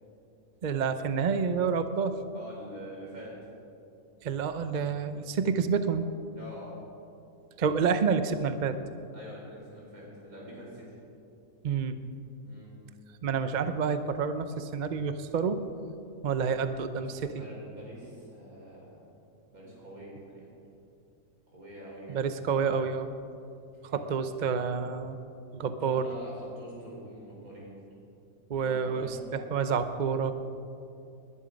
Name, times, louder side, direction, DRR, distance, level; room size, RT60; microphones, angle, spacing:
voice 1, 0.6-2.2 4.2-6.1 7.6-8.7 11.6-12.0 13.2-15.6 16.2-17.1 22.1-23.1 23.9-25.2 25.5-26.1 28.5-30.3, right 6 dB, 45° right, 10 dB, 0.6 m, -28 dB
voice 2, 2.3-3.4 6.3-6.8 9.1-10.9 12.4-12.7 16.9-19.1 19.5-20.5 21.5-22.2 23.8-24.1 25.8-27.8 28.6-29.3, equal, 85° right, -5 dB, 5.5 m, -45 dB
20.5 x 11.0 x 5.2 m, 2.6 s
omnidirectional pair, 1.5 m